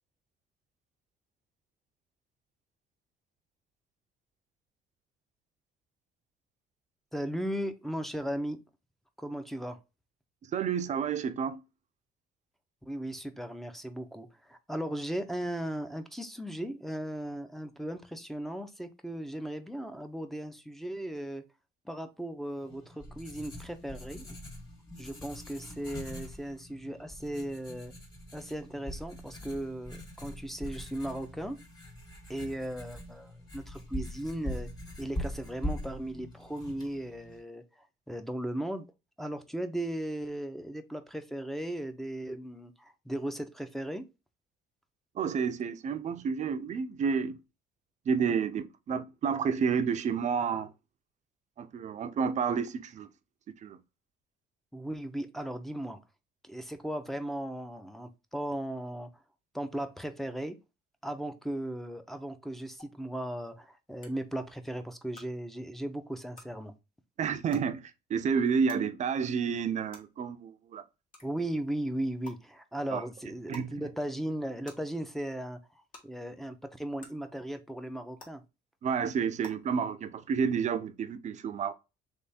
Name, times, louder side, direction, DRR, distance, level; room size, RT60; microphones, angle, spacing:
voice 1, 7.1-8.6 9.2-9.8 12.8-21.4 21.9-24.4 25.0-27.9 28.3-31.6 32.3-34.7 35.0-37.6 38.1-38.9 39.2-44.0 54.7-56.0 56.4-59.1 59.5-60.6 61.0-66.7 71.2-75.6 76.0-78.4, right 1 dB, ahead, 0.6 m, -37 dB
voice 2, 10.5-11.6 45.2-47.4 48.1-50.7 51.6-53.1 53.6-53.8 67.2-70.8 72.9-73.0 73.5-73.7 78.8-81.7, right 6 dB, 40° right, 0.6 m, -30 dB
Writing, 22.6-37.4, equal, 25° left, 1.8 m, -42 dB
sound 1, 62.8-62.9 64.0-64.1 65.1-65.2 66.3-66.4 67.5-67.6 68.7-68.8 69.9-70.0 71.1-71.2 72.2-72.3 73.5-73.7 74.6-74.7 75.9-76.0 77.0-77.1 78.2-78.3 79.4-79.5, left 2 dB, 50° left, 1.8 m, -48 dB
3.4 x 3.2 x 4.1 m
cardioid pair, 110°, 18 cm